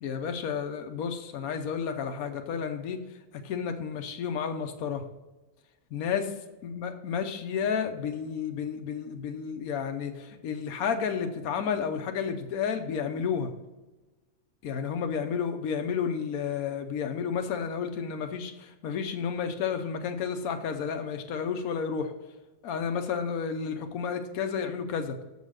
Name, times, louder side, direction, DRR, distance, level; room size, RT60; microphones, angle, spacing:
voice 1, 0.0-3.0 3.4-5.1 5.9-6.3 6.6-13.5 14.6-22.1 22.6-25.2, left 6 dB, 85° left, 6 dB, 1.2 m, -31 dB
7.2 x 5.5 x 6.3 m, 1.1 s
omnidirectional pair, 1.5 m